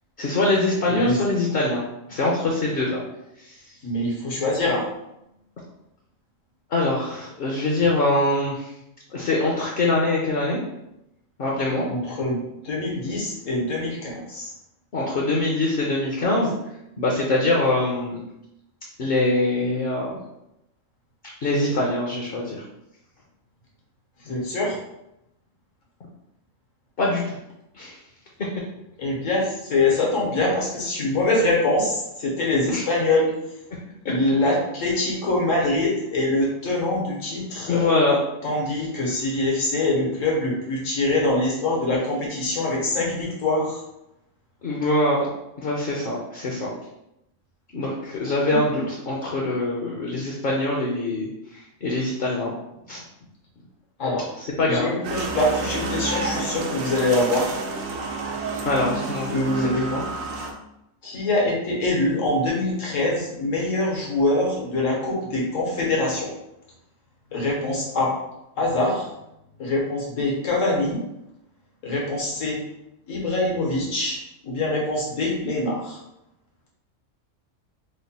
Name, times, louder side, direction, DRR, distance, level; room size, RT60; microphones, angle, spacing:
voice 1, 0.2-1.8 2.1-3.0 3.4-3.5 6.7-8.7 9.1-10.6 11.4-11.9 14.9-16.5 17.0-18.2 19.0-20.2 21.4-22.6 27.0-27.4 27.7-28.0 32.7-32.8 33.7-33.8 37.7-38.2 44.6-45.3 45.6-46.7 47.7-51.3 51.8-52.5 52.9-53.0 54.6-54.9 58.6-60.0, left 2 dB, 55° left, -2 dB, 0.7 m, -23 dB
voice 2, 0.9-1.2 3.8-4.9 11.9-14.5 24.2-24.8 29.0-33.3 34.0-37.9 38.4-43.8 48.5-48.8 54.0-54.3 54.7-57.6 59.3-59.9 61.0-66.3 67.3-68.2 68.6-69.1 69.6-71.0 71.8-72.6 73.1-74.2 74.4-76.0, left 2 dB, 80° left, -3 dB, 1.4 m, -24 dB
sound 1, 55.0-60.5, right 3 dB, 85° right, 1.0 m, -30 dB
3.2 x 2.2 x 4.1 m, 0.86 s
omnidirectional pair, 1.3 m